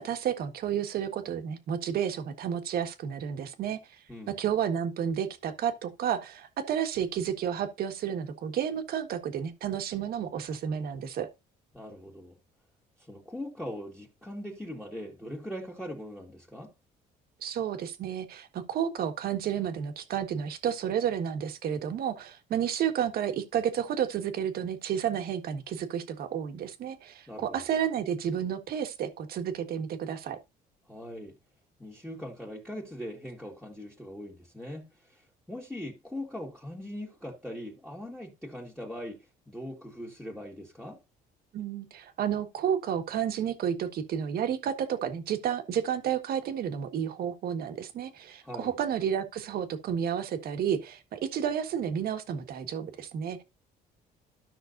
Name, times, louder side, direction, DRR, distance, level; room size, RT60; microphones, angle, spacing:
voice 1, 0.0-11.3 17.4-30.4 41.5-53.4, right 8 dB, 65° right, 1.5 m, -31 dB
voice 2, 11.7-12.4 13.0-16.7 27.3-27.6 30.9-31.4 31.8-41.0 48.4-48.7, left 1 dB, 5° left, 2.0 m, -41 dB
13.5 x 5.9 x 2.6 m
cardioid pair, 110°, 17 cm